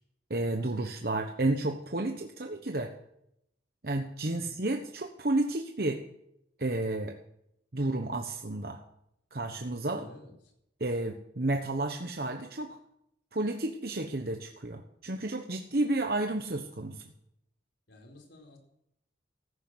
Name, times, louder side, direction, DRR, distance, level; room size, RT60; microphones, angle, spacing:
voice 1, 0.3-2.9 3.8-6.0 6.6-7.2 7.7-8.8 9.3-10.1 10.8-12.8 13.3-17.0, right 2 dB, 55° right, 4 dB, 1.1 m, -31 dB
voice 2, 4.3-4.6 9.9-10.3 17.9-18.6, left 1 dB, 80° left, 1 dB, 4.5 m, -51 dB
14.5 x 11.5 x 7.9 m, 0.78 s
head